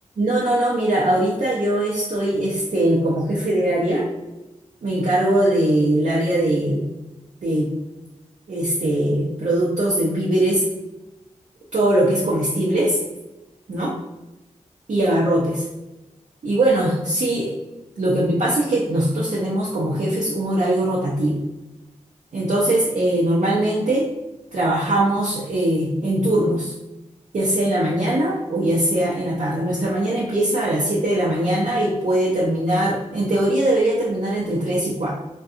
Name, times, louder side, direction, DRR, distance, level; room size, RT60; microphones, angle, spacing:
voice 1, 0.2-4.1 4.8-6.9 7.4-7.7 8.5-10.6 11.7-13.0 13.7-14.0 14.9-15.6 16.4-17.6 18.0-21.4 22.3-24.1 24.5-26.7 27.3-35.1, right 1 dB, 70° right, -5 dB, 0.6 m, -21 dB
2.6 x 2.2 x 2.4 m, 1.0 s
wide cardioid pair, 80°, 12 cm